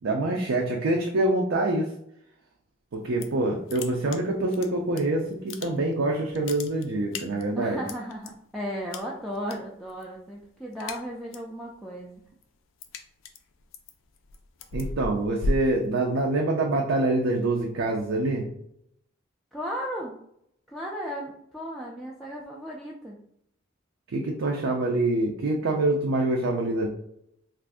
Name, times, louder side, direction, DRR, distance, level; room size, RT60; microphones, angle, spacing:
voice 1, 0.0-1.9 2.9-7.8 14.7-18.4 24.1-26.9, right 2 dB, 70° right, 0 dB, 0.5 m, -25 dB
sound 1, 2.9-3.4 3.7-5.0 5.3-6.0 6.3-8.3 8.9-9.5 9.8-10.2 10.5-11.5 11.9-16.4, left 2 dB, 75° left, 0.4 m, -35 dB
voice 2, 7.6-12.2 19.5-20.2 20.7-23.2, equal, ahead, -4 dB, 0.3 m, -35 dB
2.5 x 2.5 x 3.4 m, 0.74 s
head